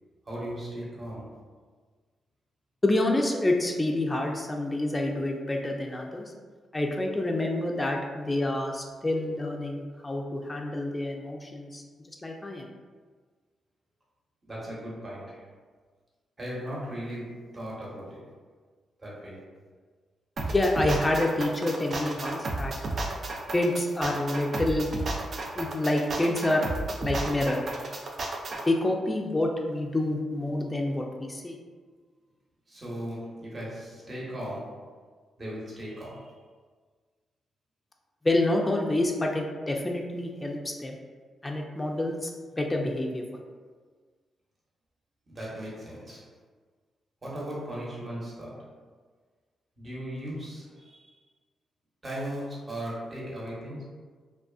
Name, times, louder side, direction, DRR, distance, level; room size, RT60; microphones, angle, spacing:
voice 1, 0.3-1.4 14.5-15.4 16.4-18.3 19.0-19.5 25.3-25.4 32.7-34.9 35.4-36.3 45.3-46.3 47.2-48.8 49.8-51.1 52.0-53.8, equal, 40° right, -6 dB, 1.0 m, -37 dB
voice 2, 2.8-6.3 6.7-11.8 12.2-12.6 20.5-22.7 23.5-24.9 25.6-26.7 27.0-27.6 28.7-31.6 38.2-40.9 41.4-42.3 42.6-43.2, left 1 dB, 25° left, 1 dB, 0.3 m, -27 dB
sound 1, 20.4-28.6, right 2 dB, 55° right, 0.4 m, -33 dB
2.4 x 2.3 x 2.3 m, 1.5 s
supercardioid pair, 45°, 0 cm